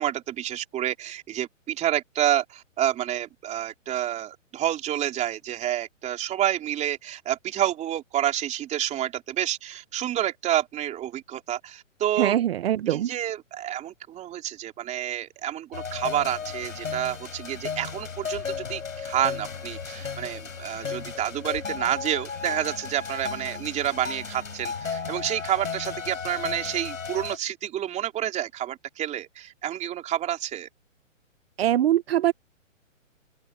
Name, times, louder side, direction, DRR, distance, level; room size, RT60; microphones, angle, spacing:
voice 1, 0.0-12.3 12.9-30.7, right 12 dB, 20° right, 3.4 m, -29 dB
voice 2, 12.2-13.1 31.6-32.3, right 12 dB, 50° right, 1.4 m, -22 dB
sound 1, 15.7-27.4, left 5 dB, 85° left, 5.9 m, -34 dB
open air
hypercardioid pair, 135°, 39 cm